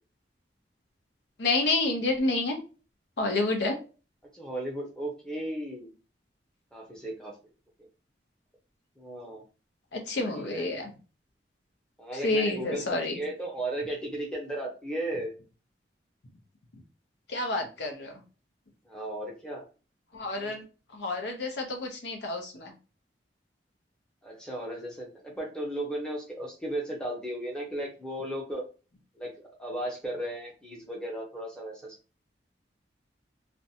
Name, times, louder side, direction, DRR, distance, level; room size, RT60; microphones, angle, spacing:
voice 1, 1.4-2.6 3.2-3.7 9.9-10.9 12.2-13.2 17.3-18.1 20.1-20.6 21.0-22.7, left 2 dB, 75° left, 3 dB, 0.6 m, -29 dB
voice 2, 4.3-5.9 6.7-7.3 9.0-9.4 10.2-10.7 12.0-15.3 18.9-19.6 20.4-20.6 24.2-28.6 29.2-32.0, right 1 dB, 5° left, -2 dB, 0.7 m, -35 dB
2.5 x 2.1 x 2.7 m, 0.34 s
head